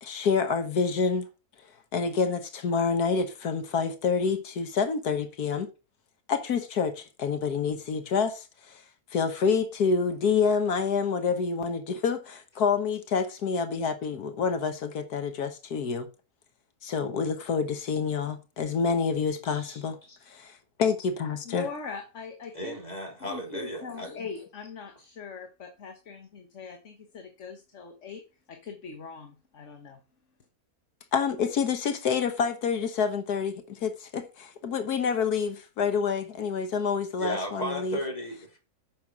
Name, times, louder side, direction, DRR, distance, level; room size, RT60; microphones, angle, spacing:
voice 1, 0.0-1.3 1.9-5.7 6.3-8.8 9.1-16.1 16.8-20.0 20.3-21.7 31.1-38.0, left 5 dB, 85° left, 1.7 m, -27 dB
voice 2, 19.4-20.2 21.4-22.8 23.2-28.2 28.5-30.0, left 5 dB, 55° left, 1.6 m, -42 dB
voice 3, 22.5-24.1 37.2-38.6, equal, 25° left, 3.2 m, -34 dB
9.3 x 6.2 x 6.1 m
omnidirectional pair, 1.6 m